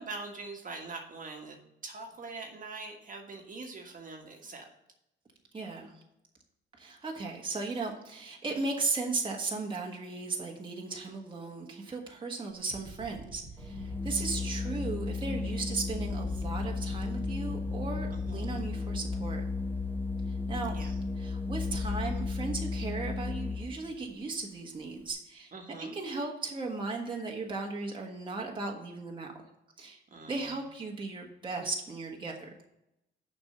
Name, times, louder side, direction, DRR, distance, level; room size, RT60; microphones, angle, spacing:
voice 1, 0.0-4.7 18.1-18.5 20.7-20.9 25.5-25.9 30.1-30.6, right 3 dB, 40° right, 2 dB, 1.5 m, -43 dB
voice 2, 5.5-6.0 6.8-19.4 20.5-25.5 25.9-29.3 29.8-30.0 30.3-32.5, right 3 dB, 25° right, -1 dB, 1.4 m, -36 dB
sound 1, 12.5-15.8 16.3-18.6, right 3 dB, 85° right, 1.7 m, -48 dB
Organ, 13.6-23.9, left 3 dB, 10° left, 0.9 m, -34 dB
7.0 x 5.4 x 6.5 m, 0.86 s
cardioid pair, 90°, 20 cm